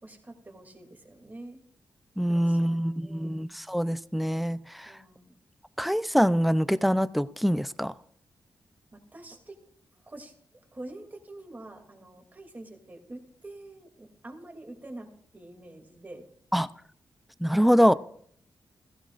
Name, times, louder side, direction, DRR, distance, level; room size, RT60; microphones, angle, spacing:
voice 1, 0.0-1.6 2.2-3.4 4.8-5.4 8.9-9.6 10.0-16.2 17.7-18.0, right 2 dB, 20° right, 2.7 m, -46 dB
voice 2, 2.2-4.9 5.8-7.9 16.5-16.7 17.4-17.9, equal, ahead, 0.5 m, -24 dB
16.5 x 15.5 x 2.5 m
wide cardioid pair, 105°, 8 cm